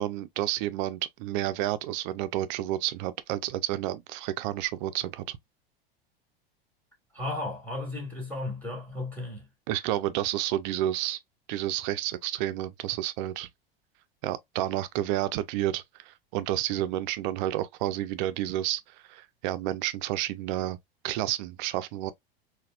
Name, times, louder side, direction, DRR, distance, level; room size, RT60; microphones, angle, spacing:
voice 1, 0.0-5.4 9.7-11.2 11.5-13.5 14.2-18.8 19.1-20.8 21.0-22.1, right 14 dB, 50° right, 0.5 m, -30 dB
voice 2, 7.1-9.5, left 2 dB, 5° left, 1.6 m, -34 dB
4.0 x 2.3 x 2.3 m
figure-of-eight pair, 85°, 30 cm